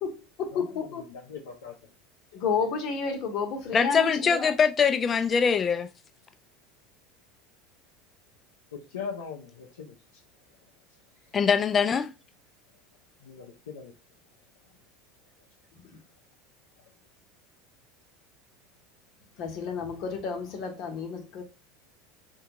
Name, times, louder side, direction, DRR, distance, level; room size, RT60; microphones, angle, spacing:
voice 1, 0.0-1.1 2.3-4.5 15.7-16.0 19.4-21.4, left 5 dB, 55° left, 0.9 m, -31 dB
voice 2, 1.1-1.8 2.3-2.4 8.7-9.9 13.2-13.9, left 6 dB, 85° left, 0.5 m, -40 dB
voice 3, 3.7-5.9 11.3-12.1, left 6 dB, 30° left, 0.4 m, -23 dB
3.5 x 2.3 x 2.8 m
hypercardioid pair, 85°, 0 cm